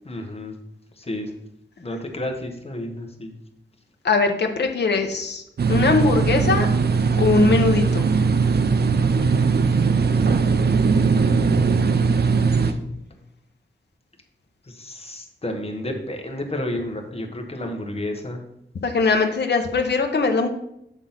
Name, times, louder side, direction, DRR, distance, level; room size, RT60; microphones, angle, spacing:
voice 1, 0.0-0.6 1.0-1.3 1.8-3.4 9.3-10.4 10.9-11.7 12.6-12.8 14.6-18.4, left 1 dB, 30° left, 3 dB, 1.1 m, -32 dB
voice 2, 4.0-5.4 5.7-6.7 7.2-8.0 18.8-20.5, left 4 dB, 60° left, 5 dB, 0.8 m, -20 dB
sound 1, 5.6-12.7, right 5 dB, 55° right, 0.5 m, -19 dB
7.3 x 3.6 x 5.6 m, 0.78 s
wide cardioid pair, 120°, 20 cm